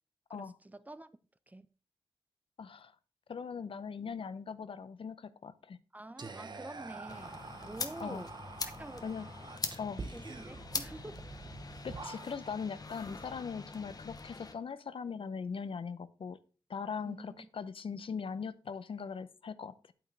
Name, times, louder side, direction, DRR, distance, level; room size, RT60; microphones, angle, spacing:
voice 1, 0.3-1.1 1.5-1.7 5.9-7.4 7.7-8.3 8.8-9.1 10.1-11.3 17.0-17.5, right 2 dB, 15° right, 0.5 m, -47 dB
voice 2, 2.6-2.9 3.3-5.8 8.0-8.2 9.0-9.3 9.8-10.0 11.8-16.4 16.7-19.9, left 6 dB, 80° left, 0.6 m, -40 dB
Whispering, 6.2-12.6, right 4 dB, 55° right, 0.9 m, -46 dB
sound 1, 7.1-14.5, left 3 dB, 45° left, 0.9 m, -43 dB
9.0 x 8.8 x 3.3 m
wide cardioid pair, 105°, 9 cm